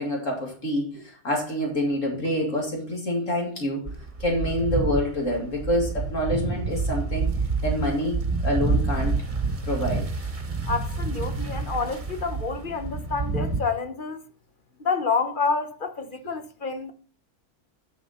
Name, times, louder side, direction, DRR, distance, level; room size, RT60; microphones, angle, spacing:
voice 1, 0.0-7.3 7.6-9.2 9.6-10.1, left 1 dB, 55° left, 2.5 m, -27 dB
sound 1, 3.9-13.6, right 4 dB, 25° right, 1.2 m, -28 dB
voice 2, 10.7-14.2 14.8-16.9, left 4 dB, 40° left, 0.9 m, -28 dB
10.0 x 6.3 x 4.2 m
omnidirectional pair, 1.6 m